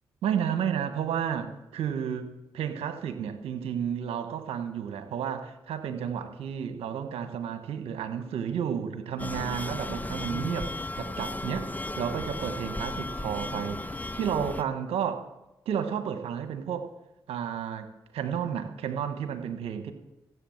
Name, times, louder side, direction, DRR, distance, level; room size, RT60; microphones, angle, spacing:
voice 1, 0.2-15.3 15.6-16.9 17.3-19.9, right 8 dB, 80° right, 8 dB, 1.4 m, -32 dB
sound 1, 9.2-14.6, left 2 dB, 15° left, 0.7 m, -35 dB
15.5 x 8.1 x 7.3 m, 0.91 s
supercardioid pair, 40°, 10 cm